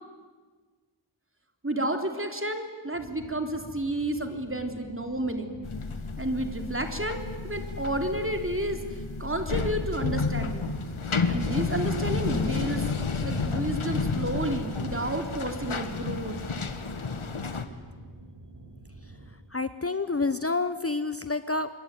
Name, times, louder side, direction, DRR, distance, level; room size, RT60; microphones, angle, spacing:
voice 1, 1.6-5.6 6.2-10.7 11.1-12.9 13.2-16.4, right 1 dB, 25° right, 5 dB, 3.4 m, -31 dB
sound 1, 2.9-19.3, right 1 dB, 55° right, 5.5 m, -48 dB
sound 2, 5.6-17.6, left 4 dB, 85° left, 1.8 m, -31 dB
voice 2, 19.5-21.7, left 3 dB, 30° left, 12 dB, 0.9 m, -28 dB
27.5 x 22.0 x 9.4 m, 1.4 s
wide cardioid pair, 60°, 48 cm